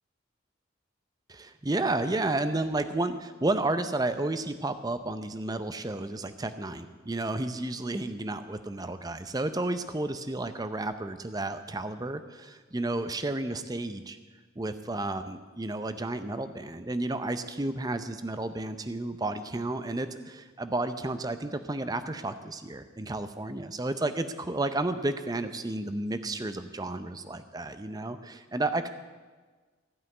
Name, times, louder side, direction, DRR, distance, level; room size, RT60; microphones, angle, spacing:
voice 1, 1.3-14.2 14.6-28.9, right 2 dB, 20° right, 10 dB, 0.6 m, -32 dB
15.5 x 5.6 x 9.4 m, 1.4 s
head